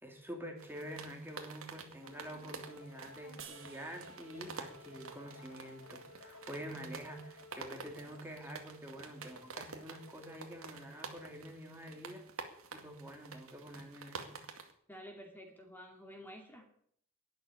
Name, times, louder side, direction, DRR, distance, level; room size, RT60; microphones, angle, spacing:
voice 1, 0.0-12.2 12.7-14.4, equal, 10° right, 2 dB, 2.4 m, -47 dB
sound 1, 0.6-14.7, right 4 dB, 80° right, 2.2 m, -50 dB
sound 2, 2.0-11.4, left 2 dB, 90° left, 1.7 m, -57 dB
sound 3, 3.4-6.7, right 8 dB, 60° right, 2.4 m, -57 dB
voice 2, 14.9-16.7, equal, 10° left, 3 dB, 2.3 m, -51 dB
11.5 x 10.5 x 9.9 m, 0.65 s
head